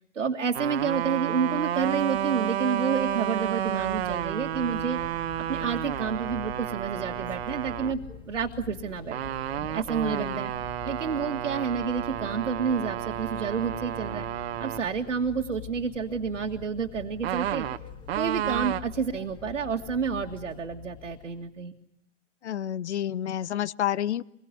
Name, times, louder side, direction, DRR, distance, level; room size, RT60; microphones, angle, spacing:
voice 1, 0.1-5.0 5.5-8.0 8.3-9.3 9.7-10.5 10.8-14.3 14.6-17.7 18.2-21.8, right 6 dB, 85° right, 0 dB, 2.2 m, -29 dB
sound 1, 0.5-7.9 9.1-14.8 17.2-18.8, right 12 dB, 55° right, 1.4 m, -31 dB
sound 2, 3.3-21.5, left 9 dB, 15° left, 1.9 m, -45 dB
voice 2, 10.0-10.4 22.4-24.2, left 11 dB, 65° left, 21 dB, 1.0 m, -30 dB
26.5 x 22.5 x 9.8 m, 0.79 s
hypercardioid pair, 125°, 36 cm